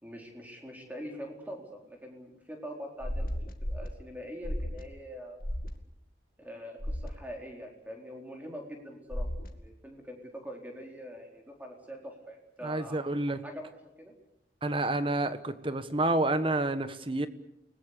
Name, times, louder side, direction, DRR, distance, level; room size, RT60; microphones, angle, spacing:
voice 1, 0.0-3.3 3.6-5.4 6.4-13.0 13.4-14.1, equal, 10° right, 1 dB, 4.3 m, -44 dB
sound 1, 3.0-3.9 4.4-4.8 5.4-5.7 6.8-7.1 9.1-9.5, equal, 55° left, 2.2 m, -33 dB
voice 2, 12.6-13.4 14.6-17.3, right 2 dB, 30° right, 11 dB, 1.3 m, -29 dB
29.5 x 20.5 x 6.8 m, 0.82 s
head